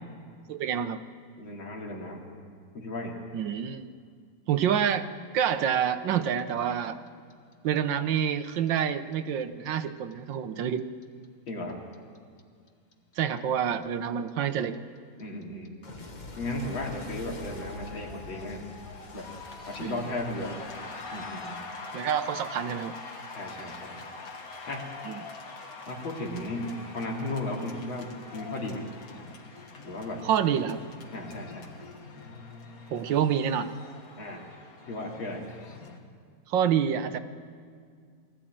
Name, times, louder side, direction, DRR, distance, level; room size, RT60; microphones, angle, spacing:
voice 1, 0.5-1.0 3.3-3.9 4.5-5.1 5.3-7.0 7.6-10.8 13.2-14.8 19.8-20.0 21.9-23.0 25.0-25.2 30.2-30.8 32.9-33.7 36.5-37.2, right 8 dB, 75° right, 10 dB, 1.5 m, -27 dB
voice 2, 1.4-2.3 2.7-3.2 11.5-11.8 15.2-15.7 16.4-18.7 19.1-19.3 19.7-20.6 21.1-21.6 23.3-24.0 24.7-24.9 25.9-28.9 29.8-30.3 31.1-31.7 34.2-34.5 34.9-35.5, left 1 dB, 90° left, 0 dB, 3.4 m, -35 dB
Clock, 6.1-9.1 9.4-12.4 12.7-21.5, left 2 dB, 30° left, 1.1 m, -46 dB
sound 1, 17.3-36.0, left 3 dB, 50° left, 1.9 m, -44 dB
21.0 x 14.5 x 8.8 m, 2.1 s
omnidirectional pair, 2.1 m